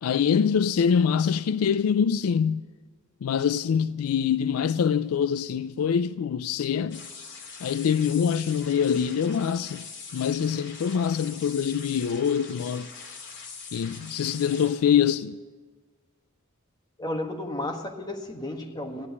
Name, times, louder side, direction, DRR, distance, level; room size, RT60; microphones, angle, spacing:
voice 1, 0.0-2.6 3.2-7.0 7.6-9.8 10.1-12.9 13.7-15.4, left 7 dB, 80° left, 0.4 m, -24 dB
sound 1, 6.9-14.7, left 5 dB, 60° left, 2.4 m, -43 dB
voice 2, 17.0-19.1, left 1 dB, 20° left, 1.4 m, -33 dB
15.5 x 9.8 x 8.4 m
head